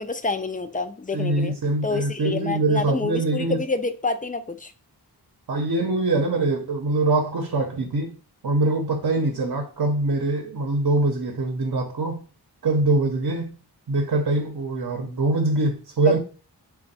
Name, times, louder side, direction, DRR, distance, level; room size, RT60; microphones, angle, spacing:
voice 1, 0.0-1.5 1.8-4.7 16.1-16.2, left 3 dB, 20° left, 0.4 m, -28 dB
voice 2, 1.1-3.6 5.5-8.1 8.4-12.2 12.6-13.6 13.9-16.2, right 2 dB, 60° right, 0.8 m, -23 dB
3.4 x 2.3 x 4.0 m
wide cardioid pair, 65°, 40 cm